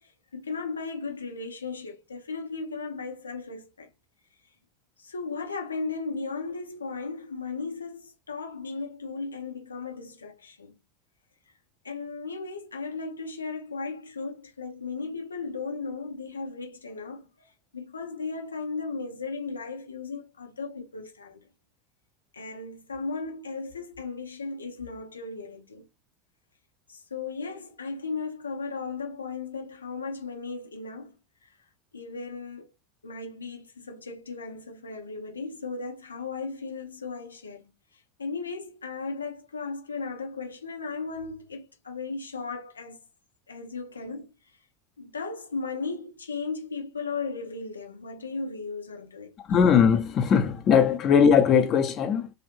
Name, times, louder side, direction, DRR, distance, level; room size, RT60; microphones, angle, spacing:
voice 1, 0.0-3.9 5.0-10.7 11.8-21.4 22.3-25.9 26.9-31.5 31.9-32.7 33.0-37.6 37.9-43.0 43.5-44.3 45.0-49.4, left 4 dB, 85° left, 0.9 m, -36 dB
voice 2, 49.5-52.3, left 7 dB, 40° left, 0.9 m, -20 dB
3.3 x 2.6 x 2.9 m
figure-of-eight pair, 80°, 0 cm